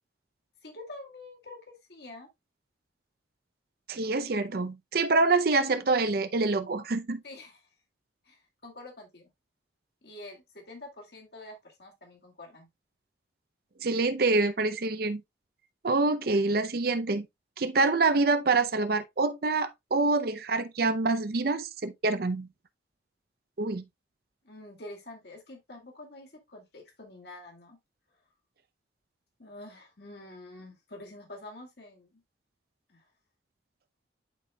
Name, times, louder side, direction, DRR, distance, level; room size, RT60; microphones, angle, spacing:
voice 1, 0.6-2.3 7.2-7.7 8.2-9.3 10.0-12.7 24.4-27.8 29.4-32.2 32.9-33.0, left 2 dB, 60° left, 2.2 m, -47 dB
voice 2, 3.9-7.2 13.8-15.2 15.8-17.3 17.6-22.5 23.6-23.8, right 3 dB, 50° right, 0.5 m, -26 dB
11.0 x 4.3 x 2.2 m
head